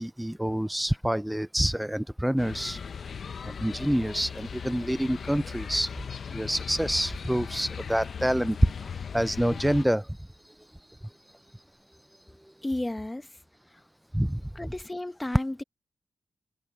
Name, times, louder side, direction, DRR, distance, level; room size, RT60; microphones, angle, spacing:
voice 1, 0.0-2.8 3.4-5.9 6.3-11.6 14.1-14.4, equal, 5° right, 0.3 m, -28 dB
sound 1, 2.4-9.9, left 6 dB, 60° left, 0.8 m, -38 dB
voice 2, 12.6-13.3 14.5-15.6, left 1 dB, 15° left, 1.3 m, -32 dB
cardioid pair, 90°, 0 cm